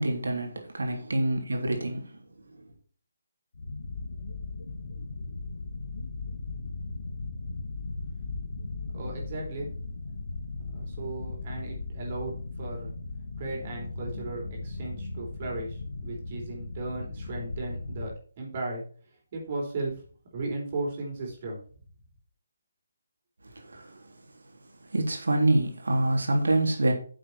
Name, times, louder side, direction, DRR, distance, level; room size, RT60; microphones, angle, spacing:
voice 1, 0.0-2.2 2.5-2.6 23.5-24.1 24.9-26.9, right 1 dB, 70° right, 3.4 m, -26 dB
sound 1, 3.5-18.2, left 3 dB, 60° left, 1.5 m, -37 dB
voice 2, 8.9-9.7 10.6-12.9 13.4-18.1 18.4-18.8 19.3-19.9 20.3-21.6, right 2 dB, 35° right, 4.3 m, -36 dB
10.0 x 7.5 x 4.4 m
figure-of-eight pair, 145°, 0 cm